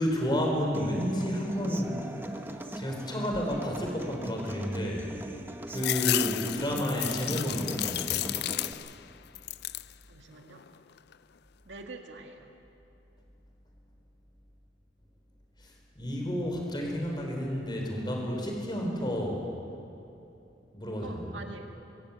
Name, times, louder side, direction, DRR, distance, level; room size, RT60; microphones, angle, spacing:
voice 1, 0.0-2.0 2.7-5.1 5.7-8.3 15.6-19.4 20.7-21.4, equal, 25° left, 0 dB, 4.3 m, -31 dB
Human voice / Acoustic guitar, 0.7-8.7, right 1 dB, 10° right, 1.0 m, -41 dB
sound 1, 5.8-9.0 9.3-9.9 10.4-11.1, left 15 dB, 60° left, 0.4 m, -32 dB
voice 2, 10.1-10.6 11.7-12.5 21.0-21.7, right 3 dB, 75° right, 3 dB, 1.9 m, -45 dB
23.5 x 15.5 x 8.5 m, 2.8 s
head